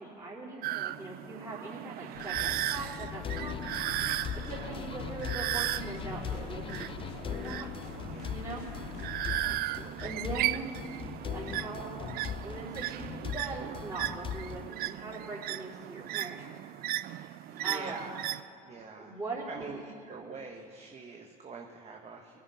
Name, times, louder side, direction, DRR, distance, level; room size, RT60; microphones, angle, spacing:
voice 1, 0.0-3.6 4.3-7.7 8.2-8.7 10.0-10.9 11.2-12.1 12.4-16.5 17.0-17.3 17.6-18.0 18.9-19.8, right 2 dB, 15° right, -8 dB, 4.2 m, -41 dB
sound 1, 0.6-18.4, right 14 dB, 55° right, 0.4 m, -36 dB
sound 2, 2.1-9.5, left 10 dB, 80° left, 0.7 m, -44 dB
sound 3, 2.3-14.7, left 9 dB, 30° left, 0.3 m, -41 dB
voice 2, 8.1-8.4 9.4-10.2 11.4-11.6 17.5-18.3 18.6-19.2 19.5-22.4, right 4 dB, 35° right, 2 dB, 1.3 m, -45 dB
20.0 x 10.5 x 5.7 m, 2.9 s
supercardioid pair, 80°, 19 cm